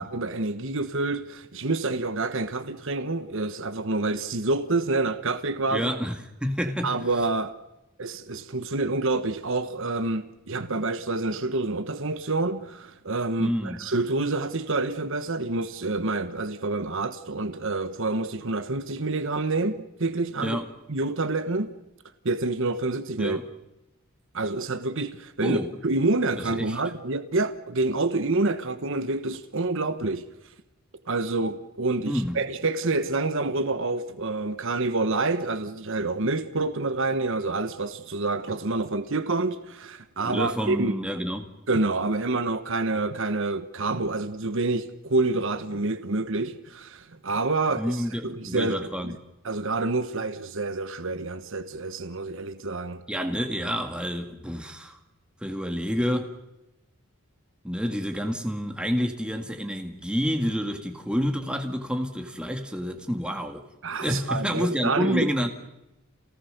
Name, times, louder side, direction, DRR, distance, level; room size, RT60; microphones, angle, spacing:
voice 1, 0.0-5.9 6.8-7.5 8.0-20.6 20.9-21.7 22.2-23.4 24.3-25.6 25.8-30.2 31.1-41.0 41.7-49.2 49.4-53.0 63.8-65.3, right 3 dB, 60° right, 1.2 m, -27 dB
voice 2, 5.7-7.0 13.4-13.8 20.4-20.7 23.2-23.4 25.4-25.7 26.5-26.8 32.1-32.4 40.2-41.5 47.7-49.1 53.1-55.0 55.4-56.4 57.6-63.6 64.0-65.5, equal, 5° right, 2.0 m, -28 dB
29.0 x 18.5 x 6.7 m
head